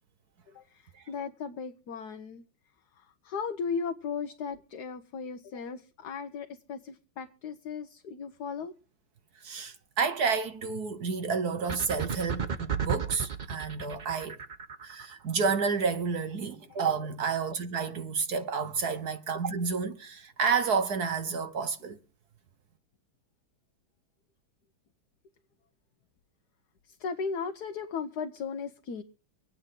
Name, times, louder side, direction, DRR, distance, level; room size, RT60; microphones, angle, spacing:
voice 1, 0.5-2.4 2.9-8.7 26.9-29.0, left 5 dB, 55° left, 1.3 m, -36 dB
voice 2, 9.4-14.4 14.8-22.0, right 5 dB, 55° right, 1.3 m, -30 dB
sound 1, 11.7-15.1, right 6 dB, 85° right, 0.4 m, -33 dB
25.5 x 9.0 x 3.7 m
omnidirectional pair, 2.3 m